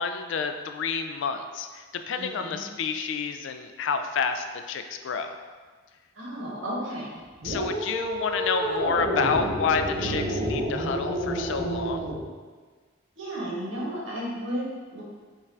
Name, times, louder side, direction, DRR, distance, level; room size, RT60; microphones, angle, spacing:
voice 1, 0.0-5.3 7.4-12.1, left 5 dB, 70° left, 8 dB, 0.3 m, -29 dB
voice 2, 2.2-2.6 6.2-7.2 13.2-15.0, equal, 80° right, -5 dB, 1.3 m, -33 dB
sound 1, 7.4-12.2, right 1 dB, 65° right, 1.0 m, -29 dB
5.5 x 2.5 x 3.3 m, 1.5 s
head